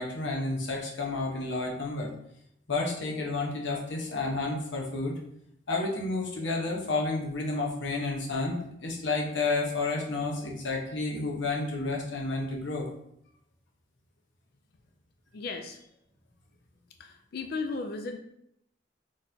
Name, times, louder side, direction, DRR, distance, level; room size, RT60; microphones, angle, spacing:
voice 1, 0.0-2.1 2.7-5.2 5.7-12.9, left 3 dB, 90° left, -1 dB, 0.9 m, -31 dB
voice 2, 15.3-15.9 17.0-18.2, left 3 dB, 55° left, 5 dB, 0.4 m, -35 dB
4.2 x 3.2 x 2.7 m, 0.76 s
head